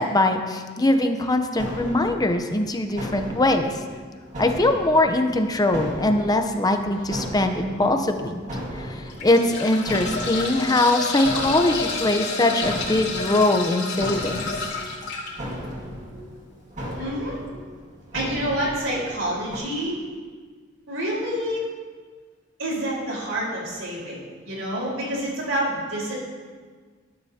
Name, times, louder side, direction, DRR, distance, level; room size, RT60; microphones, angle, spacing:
voice 1, 0.0-3.8 4.4-8.4 8.7-14.5, left 2 dB, 20° left, 6 dB, 0.7 m, -22 dB
sound 1, 1.6-19.6, equal, 40° right, 2.1 m, -36 dB
sound 2, 7.0-7.2 7.9-8.0 8.9-15.3 16.9-17.0 17.3-17.4, left 4 dB, 60° left, 3.0 m, -30 dB
voice 2, 17.0-17.4 18.1-20.0 20.9-21.7 22.6-24.2 24.4-26.1, right 1 dB, 75° right, -4 dB, 4.4 m, -27 dB
19.5 x 11.0 x 2.8 m, 1.5 s
head